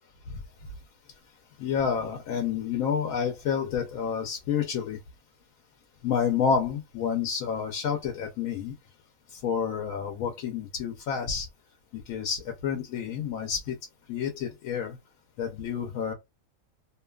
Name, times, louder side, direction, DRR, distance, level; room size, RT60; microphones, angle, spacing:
voice 1, 1.6-5.0 6.0-8.7 9.3-11.5 11.9-13.8 14.1-15.0 15.4-16.1, left 7 dB, 80° left, 1.0 m, -29 dB
2.7 x 2.3 x 2.2 m
omnidirectional pair, 1.5 m